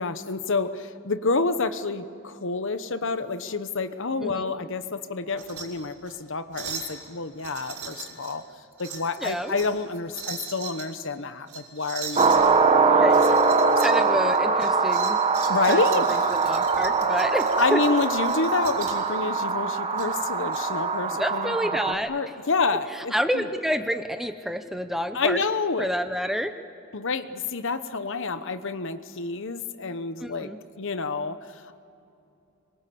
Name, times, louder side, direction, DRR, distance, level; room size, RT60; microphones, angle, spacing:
voice 1, 0.0-8.4 8.8-13.8 15.5-16.2 17.6-21.6 21.9-23.5 25.1-25.9 26.9-31.8, left 4 dB, 55° left, 11 dB, 1.0 m, -29 dB
sound 1, 5.3-5.7 6.0-6.2 6.5-7.0 7.4-8.4 8.8-9.8 10.1-10.9 11.5-12.4 13.1-14.0 14.3-19.1 20.0-20.6, right 6 dB, 80° right, 5.7 m, -39 dB
voice 2, 9.2-9.6 13.0-13.4 13.8-15.2 15.7-15.8 16.1-17.8 21.2-22.1 23.1-25.4 25.8-26.5 30.2-30.6, equal, ahead, 8 dB, 0.8 m, -28 dB
sound 2, 12.2-21.9, right 4 dB, 25° right, 1.4 m, -22 dB
26.0 x 22.5 x 8.5 m, 2.7 s
head